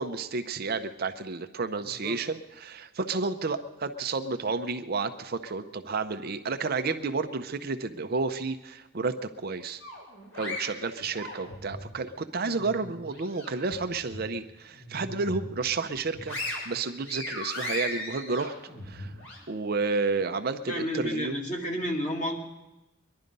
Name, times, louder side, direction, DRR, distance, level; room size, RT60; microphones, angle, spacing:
voice 1, 0.0-9.8 10.3-16.4 16.7-18.5 18.9-19.1 19.5-21.4, right 4 dB, 50° right, 8 dB, 0.6 m, -31 dB
voice 2, 1.8-2.2 20.7-22.4, equal, 40° left, 0 dB, 2.4 m, -31 dB
sound 1, 9.8-11.8 12.3-13.7 14.1-14.3 14.7-15.5 15.9-19.4, left 1 dB, 75° left, 5.0 m, -38 dB
22.5 x 11.5 x 5.3 m, 1.0 s
head